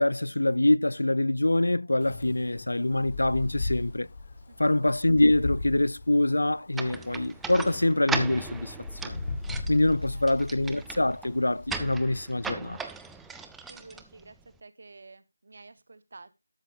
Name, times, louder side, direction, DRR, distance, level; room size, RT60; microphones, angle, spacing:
voice 1, 0.0-4.1 4.6-8.8 9.0-9.2 9.7-12.8, left 1 dB, 80° left, 0.5 m, -25 dB
Wind, 2.0-11.9, left 3 dB, 35° left, 1.0 m, -38 dB
sound 1, 6.7-14.6, right 4 dB, 5° right, 0.4 m, -38 dB
voice 2, 13.7-16.3, right 3 dB, 50° right, 1.0 m, -50 dB
12.5 x 6.5 x 3.4 m
figure-of-eight pair, 165°, 0 cm